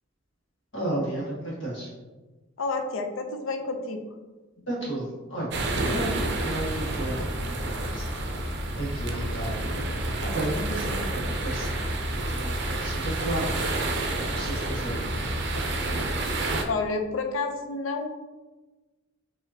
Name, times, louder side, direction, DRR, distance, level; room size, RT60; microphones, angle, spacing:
voice 1, 0.7-1.9 4.7-5.6 5.9-8.0 8.7-9.6 10.2-13.8 14.2-15.3, right 1 dB, 65° left, -6 dB, 1.5 m, -33 dB
voice 2, 2.6-4.0 4.6-4.7 16.7-18.1, left 3 dB, 85° left, 6 dB, 0.5 m, -30 dB
sound 1, 5.5-16.6, right 1 dB, 55° right, 0.5 m, -29 dB
4.9 x 2.8 x 2.7 m, 1.2 s
head